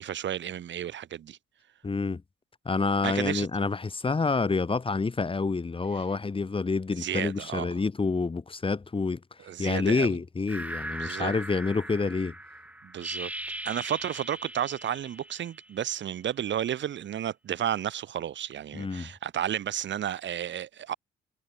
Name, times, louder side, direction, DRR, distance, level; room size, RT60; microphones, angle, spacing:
voice 1, 0.0-1.4 3.0-3.6 7.0-7.7 9.4-10.1 10.9-11.3 12.8-13.3 13.6-20.9, right 10 dB, 65° right, 5.9 m, -32 dB
voice 2, 1.8-2.2 2.6-9.2 9.6-12.3 18.7-19.1, left 4 dB, 25° left, 2.7 m, -28 dB
sound 1, 10.5-15.9, right 1 dB, 5° right, 6.2 m, -39 dB
cardioid pair, 90°, 20 cm